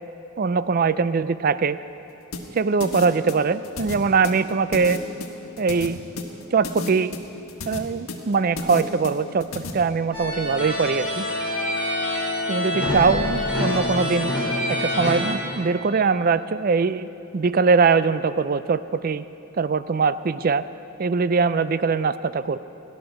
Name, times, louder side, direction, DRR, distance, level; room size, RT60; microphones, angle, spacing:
voice 1, 0.4-1.8 2.5-5.0 5.6-6.0 6.5-7.1 7.7-11.3 12.5-14.3 14.7-17.1 17.3-19.2 19.6-20.6 21.0-22.6, right 5 dB, 40° right, 14 dB, 0.4 m, -22 dB
sound 1, 2.3-9.7, left 2 dB, 80° left, 1.5 m, -33 dB
sound 2, 10.1-15.3, left 1 dB, 5° right, 2.8 m, -25 dB
17.5 x 11.0 x 6.3 m, 2.9 s
head